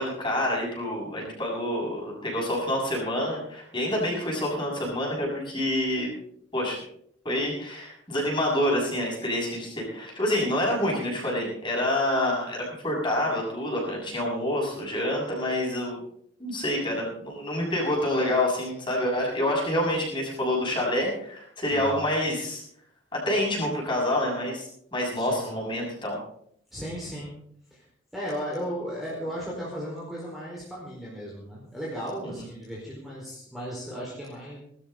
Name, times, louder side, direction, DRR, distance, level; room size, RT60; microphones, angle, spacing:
voice 1, 0.0-6.1 6.5-6.8 7.2-12.6 12.8-16.0 16.4-22.6 23.1-26.2 32.4-32.5, left 1 dB, 25° left, -2 dB, 7.3 m, -27 dB
voice 2, 21.7-22.0 25.2-25.5 26.7-27.3 27.7-27.8 28.1-34.6, equal, ahead, -6 dB, 4.6 m, -35 dB
21.0 x 13.0 x 4.0 m, 0.66 s
head